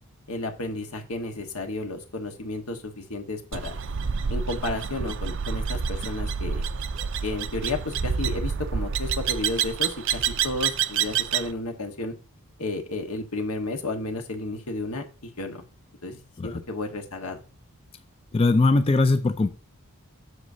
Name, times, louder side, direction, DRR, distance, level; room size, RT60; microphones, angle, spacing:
voice 1, 0.3-3.8 4.3-6.7 7.2-12.1 12.6-15.6 16.0-17.4, left 2 dB, 85° left, 4 dB, 1.3 m, -32 dB
sound 1, 3.5-11.5, right 7 dB, 55° right, 0.4 m, -28 dB
voice 2, 18.3-19.5, left 3 dB, 25° left, 9 dB, 0.4 m, -20 dB
7.9 x 6.3 x 2.7 m, 0.35 s
head